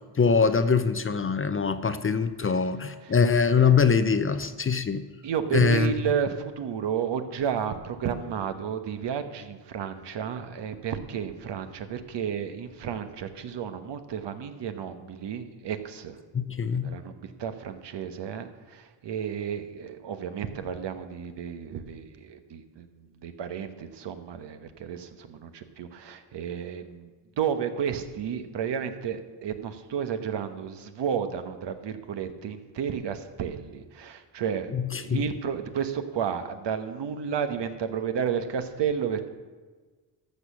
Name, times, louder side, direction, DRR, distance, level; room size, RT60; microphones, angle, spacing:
voice 1, 0.2-5.1 5.5-5.9 16.3-16.9 34.7-35.2, left 5 dB, 25° left, 11 dB, 0.6 m, -23 dB
voice 2, 5.2-16.2 16.8-27.1 27.4-34.7 35.0-39.3, right 7 dB, 60° right, 8 dB, 1.2 m, -32 dB
13.5 x 6.6 x 6.1 m, 1.4 s
cardioid pair, 90°, 47 cm